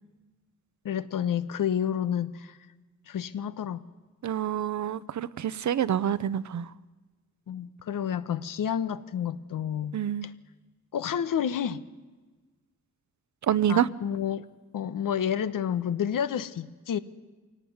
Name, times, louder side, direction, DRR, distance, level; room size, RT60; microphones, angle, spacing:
voice 1, 0.8-2.6 3.1-3.8 7.5-10.3 10.9-11.8 13.7-14.4 14.7-17.0, left 9 dB, 85° left, 1.1 m, -30 dB
voice 2, 4.2-6.7 9.9-10.3 13.5-13.9, right 10 dB, 60° right, 0.8 m, -27 dB
24.5 x 17.5 x 9.5 m
wide cardioid pair, 130°, 32 cm